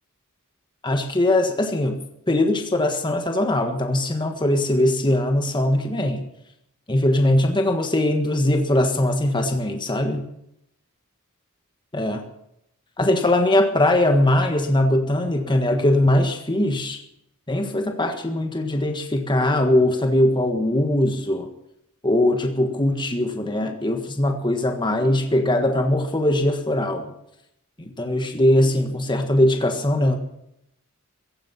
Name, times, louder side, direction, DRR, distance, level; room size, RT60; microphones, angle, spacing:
voice 1, 0.8-2.0 2.3-6.2 6.9-10.2 11.9-12.2 13.0-17.0 17.5-21.5 22.0-27.1 27.8-30.2, left 1 dB, 20° left, 5 dB, 1.5 m, -21 dB
16.0 x 15.5 x 5.7 m, 0.78 s
head